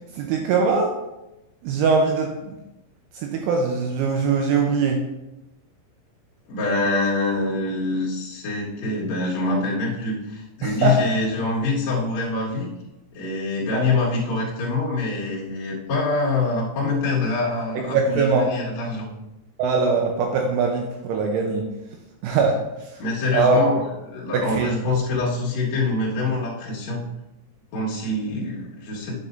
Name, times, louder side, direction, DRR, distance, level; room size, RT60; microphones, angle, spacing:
voice 1, 0.2-0.9 1.6-2.6 3.1-5.0 10.6-11.0 13.7-13.9 17.9-18.4 19.6-21.7 22.2-22.6 23.3-23.6 24.3-24.7, right 4 dB, 85° right, 2 dB, 2.8 m, -21 dB
voice 2, 6.5-12.7 13.1-19.1 23.0-23.8 24.1-27.0 27.7-29.2, left 3 dB, 80° left, -6 dB, 1.6 m, -25 dB
9.8 x 7.1 x 2.6 m, 0.96 s
omnidirectional pair, 6.0 m